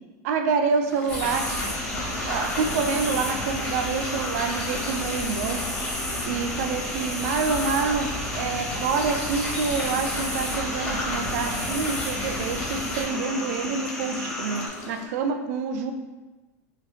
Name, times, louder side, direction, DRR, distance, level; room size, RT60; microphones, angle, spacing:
voice 1, 0.2-1.5 2.2-5.6 6.2-14.6 14.9-15.9, right 5 dB, 65° right, 6 dB, 0.4 m, -27 dB
sound 1, 0.8-15.1, left 3 dB, 75° left, 0.8 m, -40 dB
sound 2, 1.1-13.0, left 1 dB, 20° left, 1.4 m, -32 dB
sound 3, 1.3-14.7, left 1 dB, 5° left, 0.5 m, -34 dB
3.2 x 2.6 x 3.9 m, 1.2 s
supercardioid pair, 125°, 9 cm